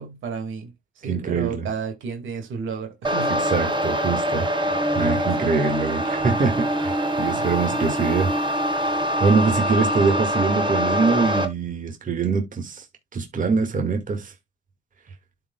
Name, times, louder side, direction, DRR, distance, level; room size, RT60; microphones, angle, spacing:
voice 1, 0.0-3.4 7.3-7.8, right 5 dB, 75° right, 2.3 m, -32 dB
voice 2, 1.1-1.7 3.5-8.3 9.2-12.8 13.1-14.3, right 4 dB, 40° right, 2.0 m, -24 dB
sound 1, 3.0-11.4, equal, 25° right, 1.6 m, -24 dB
12.0 x 4.8 x 2.3 m
cardioid pair, 90°, 20 cm